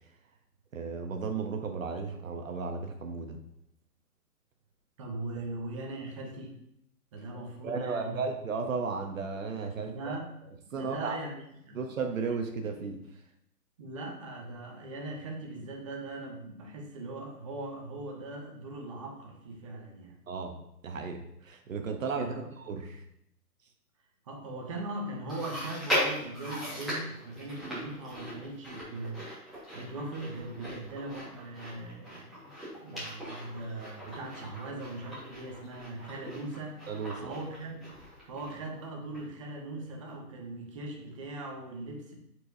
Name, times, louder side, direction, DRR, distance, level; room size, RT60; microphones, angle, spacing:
voice 1, 0.7-3.4 5.4-5.5 7.6-10.2 10.7-11.2 11.7-13.0 20.3-20.6 20.8-23.0 36.9-37.4, right 5 dB, 55° right, 5 dB, 0.9 m, -34 dB
voice 2, 5.0-6.6 7.1-8.2 9.7-10.3 10.7-11.8 13.8-20.2 22.1-22.5 24.2-32.6 32.8-36.9 37.2-38.0 38.3-42.2, right 2 dB, 20° right, 1 dB, 0.8 m, -40 dB
Chewing mastication, 25.3-38.8 39.1-39.2 40.1-40.2, equal, ahead, 1.5 m, -39 dB
7.7 x 4.6 x 2.6 m, 0.77 s
hypercardioid pair, 150°, 48 cm